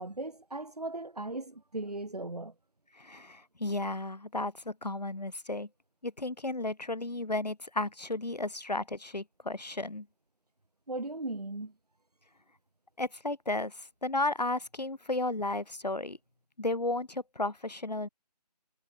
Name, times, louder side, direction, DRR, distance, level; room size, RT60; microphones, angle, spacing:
voice 1, 0.0-2.5 10.9-11.7, right 2 dB, 65° right, 5.6 m, -37 dB
voice 2, 3.0-5.7 6.0-10.1 13.0-16.2 16.6-18.1, left 2 dB, 75° left, 2.1 m, -33 dB
figure-of-eight pair, 160°, 21 cm